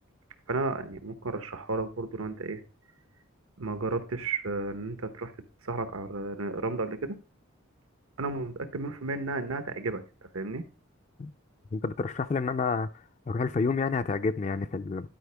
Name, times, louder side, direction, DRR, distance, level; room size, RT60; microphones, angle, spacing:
voice 1, 0.5-2.6 3.6-5.3 5.6-7.1 8.2-10.0 10.3-10.6, right 3 dB, 90° right, 1.0 m, -33 dB
voice 2, 11.7-12.9 13.3-15.1, left 4 dB, 35° left, 0.3 m, -29 dB
11.5 x 5.0 x 3.4 m
head